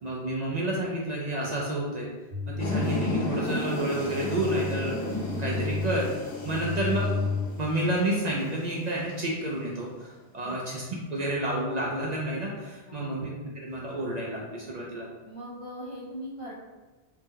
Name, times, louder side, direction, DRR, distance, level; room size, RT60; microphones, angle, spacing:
voice 1, 0.0-2.1 2.5-5.0 5.4-6.1 6.4-7.3 7.6-10.8 11.1-15.1, right 1 dB, 55° right, -4 dB, 0.5 m, -30 dB
sound 1, 2.3-7.5, left 4 dB, 85° right, 1.0 m, -33 dB
sound 2, 2.6-9.6, left 1 dB, 75° left, 0.9 m, -34 dB
voice 2, 15.2-16.5, equal, 50° left, -7 dB, 0.4 m, -40 dB
2.8 x 2.1 x 3.6 m, 1.2 s
omnidirectional pair, 1.1 m